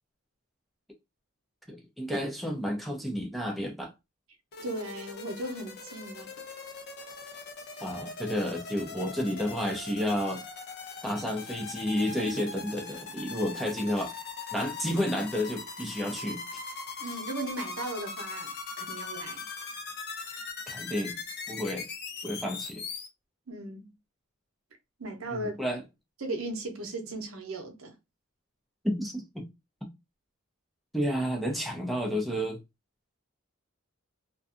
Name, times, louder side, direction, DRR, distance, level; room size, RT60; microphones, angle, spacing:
voice 1, 1.7-3.9 7.8-10.4 11.0-14.1 14.5-16.4 20.7-21.2 21.5-21.9 22.2-22.8 25.3-25.8 28.8-29.4 30.9-32.6, equal, ahead, 0.4 m, -31 dB
sound 1, 4.5-23.1, left 4 dB, 50° left, 0.5 m, -40 dB
voice 2, 4.6-6.3 17.0-19.4 23.5-23.9 25.0-25.5 26.2-27.9, right 2 dB, 75° right, 0.7 m, -37 dB
2.5 x 2.3 x 2.4 m
head